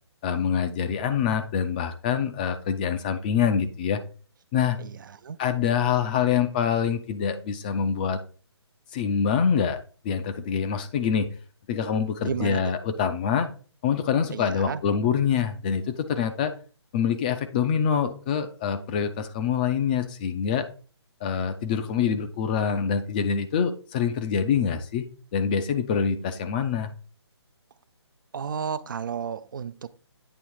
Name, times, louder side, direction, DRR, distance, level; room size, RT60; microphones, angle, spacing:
voice 1, 0.2-4.0 4.5-4.8 5.4-8.2 8.9-9.8 10.0-11.3 11.7-13.5 13.8-16.5 16.9-20.7 21.2-25.1 25.3-26.9, left 7 dB, 20° left, 0.4 m, -25 dB
voice 2, 12.2-12.7 14.3-14.8 28.3-30.0, right 7 dB, 45° right, 0.4 m, -32 dB
8.7 x 3.0 x 4.6 m
figure-of-eight pair, 150°, 15 cm